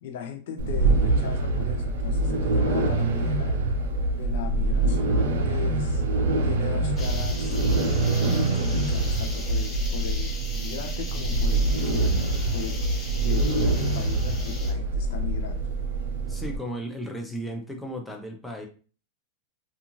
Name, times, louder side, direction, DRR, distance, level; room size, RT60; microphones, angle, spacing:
voice 1, 0.0-3.6 4.2-6.0 6.4-7.6 8.2-12.8 13.2-15.6, left 7 dB, 70° left, 0.5 m, -37 dB
sound 1, 0.6-16.6, right 2 dB, 85° right, 0.6 m, -25 dB
sound 2, 7.0-14.7, left 3 dB, 20° left, 0.9 m, -40 dB
voice 2, 16.3-18.7, equal, 5° left, 0.6 m, -35 dB
2.5 x 2.4 x 3.0 m
supercardioid pair, 145°, 0 cm